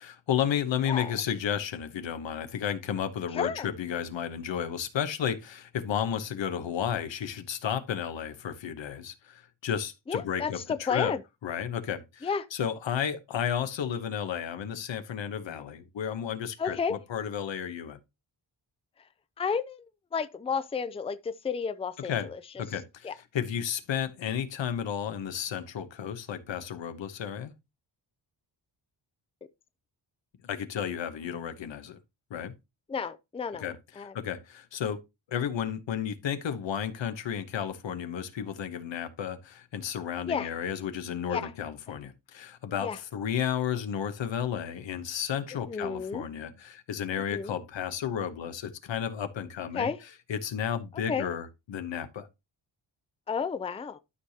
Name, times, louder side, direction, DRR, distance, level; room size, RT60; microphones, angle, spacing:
voice 1, 0.0-11.1 11.4-18.0 22.1-22.3 22.6-27.5 30.4-32.0 32.3-32.5 33.6-35.0 35.3-49.9 50.3-52.3, left 8 dB, 80° left, 1.1 m, -33 dB
voice 2, 3.3-3.7 10.1-11.2 12.2-12.5 16.6-17.0 19.4-19.8 20.1-22.4 23.0-23.1 32.9-34.1 40.3-40.5 41.3-41.5 42.8-43.0 45.7-46.3 47.3-47.5 49.7-50.0 50.9-51.3 53.3-54.0, left 6 dB, 15° left, 0.4 m, -32 dB
12.5 x 4.9 x 2.8 m
wide cardioid pair, 100°, 44 cm